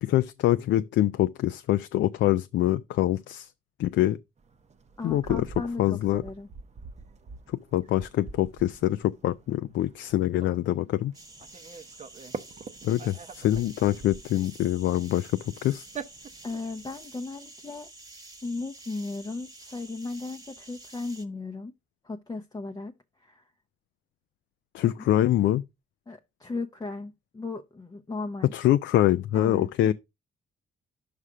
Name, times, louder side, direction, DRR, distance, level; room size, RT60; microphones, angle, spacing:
voice 1, 0.0-3.5 3.8-4.2 5.0-5.5 5.8-6.2 7.7-11.1 12.8-15.9 24.7-25.6 28.5-29.9, left 13 dB, 70° left, 0.4 m, -25 dB
sound 1, 4.4-17.0, right 5 dB, 35° right, 0.7 m, -45 dB
voice 2, 5.0-6.5 16.4-17.9 18.4-21.7 22.0-22.9 23.2-23.4 24.8-25.1 26.1-28.5 29.3-29.9, left 3 dB, 20° left, 0.6 m, -36 dB
sound 2, 11.1-21.3, right 2 dB, 20° right, 1.2 m, -49 dB
5.6 x 4.9 x 4.8 m
cardioid pair, 90°, 20 cm